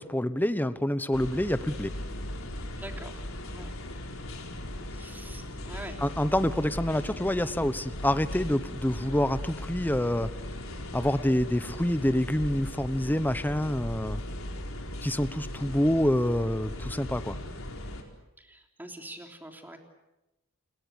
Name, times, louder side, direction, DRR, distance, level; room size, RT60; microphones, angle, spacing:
voice 1, 0.0-1.9 6.0-10.3 10.9-14.2 15.0-17.4, left 1 dB, 10° left, 12 dB, 1.0 m, -27 dB
sound 1, 1.1-18.0, left 1 dB, 75° left, 4.6 m, -38 dB
voice 2, 2.8-3.2 3.5-3.7 4.9-6.0 18.4-19.8, right 1 dB, 10° right, 3 dB, 3.4 m, -44 dB
28.5 x 22.5 x 8.2 m, 0.97 s
head